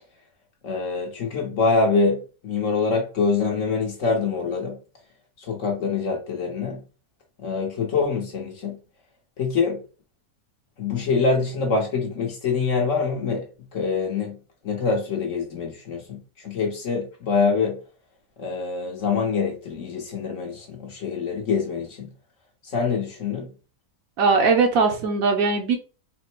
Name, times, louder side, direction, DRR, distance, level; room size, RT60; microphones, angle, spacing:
voice 1, 0.6-4.8 5.4-6.8 7.4-8.8 9.4-9.8 10.8-14.4 14.6-17.8 18.4-22.1 22.6-23.5, left 4 dB, 60° left, 1.2 m, -25 dB
voice 2, 24.2-25.8, right 4 dB, 70° right, 1.1 m, -20 dB
4.1 x 2.1 x 4.4 m
omnidirectional pair, 1.6 m